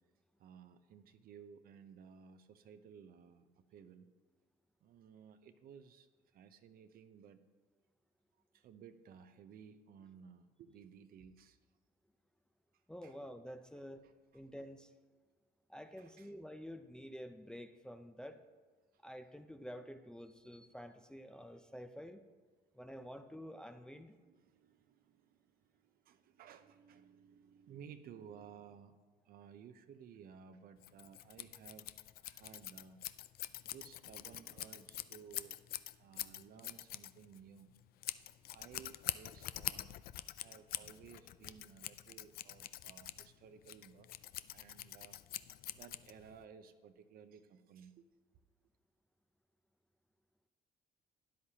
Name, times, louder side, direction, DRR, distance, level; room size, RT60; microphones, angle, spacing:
voice 1, 0.4-4.1 4.8-6.1 6.3-7.4 8.5-11.6 13.0-13.2 14.0-14.4 16.0-16.3 23.9-29.0 29.3-31.9 32.2-33.0 33.6-35.6 36.0-37.7 38.4-44.2 44.5-45.2 45.7-48.1, right 7 dB, 60° right, 0.7 m, -57 dB
voice 2, 12.9-14.0 14.3-14.9 15.7-18.4 19.0-22.2 22.7-24.1, equal, 5° left, 0.5 m, -49 dB
Scissors, 30.8-46.4, left 14 dB, 65° left, 0.4 m, -45 dB
12.5 x 10.0 x 2.9 m
cardioid pair, 110°, 17 cm